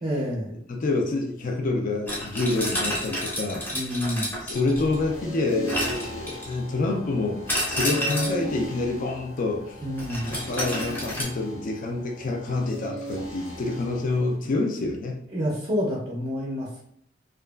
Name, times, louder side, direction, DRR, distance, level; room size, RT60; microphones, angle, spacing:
voice 1, 0.0-0.6 3.7-4.3 9.8-10.3 15.3-16.8, equal, 25° right, -4 dB, 0.5 m, -28 dB
voice 2, 0.7-3.6 4.5-7.4 7.7-9.7 10.2-15.2, left 2 dB, 45° left, 2 dB, 0.4 m, -27 dB
sound 1, 2.1-5.1 5.7-6.7 7.5-8.5 10.0-11.2, equal, 10° left, 0.7 m, -30 dB
sound 2, 4.5-14.4, right 1 dB, 85° left, 1.4 m, -38 dB
2.8 x 2.3 x 2.3 m, 0.71 s
head